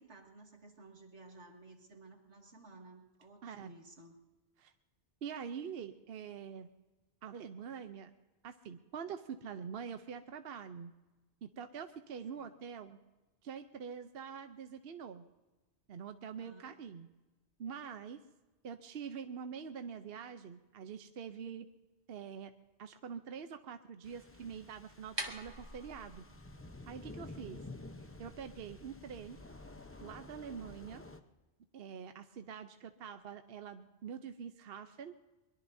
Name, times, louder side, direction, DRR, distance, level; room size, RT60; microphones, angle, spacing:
voice 1, 0.0-4.1 12.3-12.5 16.3-16.8, right 2 dB, 90° right, 2 dB, 2.5 m, -56 dB
voice 2, 3.4-3.8 4.6-4.7 5.2-6.7 7.2-8.1 8.4-10.9 11.4-13.0 13.4-15.3 15.9-17.1 17.6-18.2 18.6-21.7 22.1-22.5 22.8-26.2 26.9-27.6 28.2-29.4 30.0-31.0 31.7-35.1, right 7 dB, 65° right, 8 dB, 0.9 m, -45 dB
sound 1, 24.0-31.2, left 2 dB, 15° left, 0.7 m, -51 dB
sound 2, 24.9-30.9, right 1 dB, 25° right, 1.3 m, -49 dB
23.0 x 21.5 x 2.7 m, 1.1 s
omnidirectional pair, 1.1 m